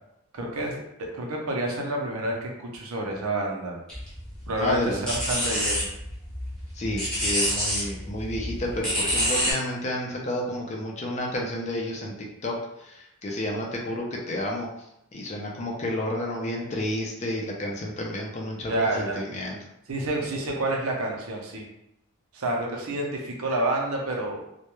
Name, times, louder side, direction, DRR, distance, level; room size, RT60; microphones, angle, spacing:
voice 1, 0.3-3.8 4.5-5.9 18.7-19.2 19.9-21.6 22.3-24.4, right 1 dB, 85° right, 0 dB, 0.6 m, -29 dB
sound 1, 3.9-9.5, equal, 5° left, 0.8 m, -28 dB
voice 2, 4.6-5.1 6.7-14.7 15.1-19.6, left 1 dB, 30° left, -1 dB, 0.4 m, -31 dB
2.3 x 2.1 x 2.9 m, 0.81 s
head